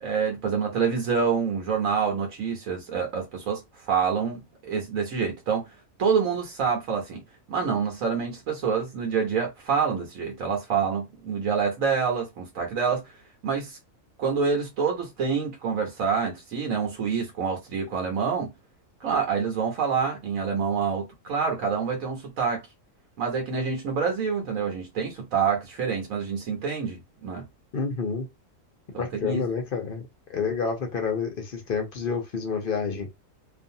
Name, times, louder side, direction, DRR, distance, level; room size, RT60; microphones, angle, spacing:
voice 1, 0.0-5.7 6.0-7.2 7.5-13.1 13.4-13.8 14.2-18.5 19.0-22.6 23.2-27.5 28.9-29.5, right 6 dB, 85° right, 1.2 m, -27 dB
voice 2, 27.7-28.3 29.0-30.0 30.3-33.1, left 5 dB, 50° left, 0.7 m, -29 dB
2.5 x 2.4 x 2.6 m
omnidirectional pair, 1.4 m